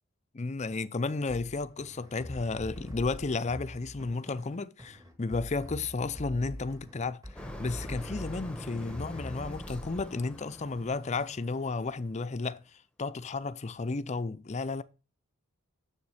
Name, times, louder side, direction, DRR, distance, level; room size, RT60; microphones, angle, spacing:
voice 1, 0.3-7.2 7.6-12.6 13.0-14.8, left 3 dB, 30° left, 0.5 m, -33 dB
sound 1, 1.3-10.0, equal, 15° right, 1.6 m, -44 dB
Motor vehicle (road), 7.4-12.3, left 1 dB, 5° left, 0.9 m, -44 dB
7.1 x 7.1 x 6.5 m
head